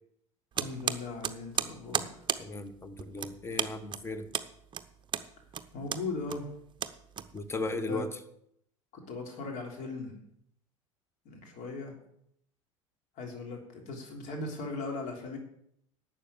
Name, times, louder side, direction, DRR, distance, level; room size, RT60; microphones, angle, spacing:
voice 1, 0.5-2.1 5.7-6.5 7.9-8.0 8.9-10.2 11.2-11.9 13.2-15.4, left 3 dB, 50° left, 2 dB, 3.3 m, -38 dB
sound 1, 0.5-7.7, right 8 dB, 30° right, 0.8 m, -35 dB
voice 2, 2.4-4.3 7.3-8.2, left 2 dB, 15° left, 11 dB, 1.3 m, -36 dB
11.5 x 7.5 x 7.1 m, 0.72 s
figure-of-eight pair, 75°, 16 cm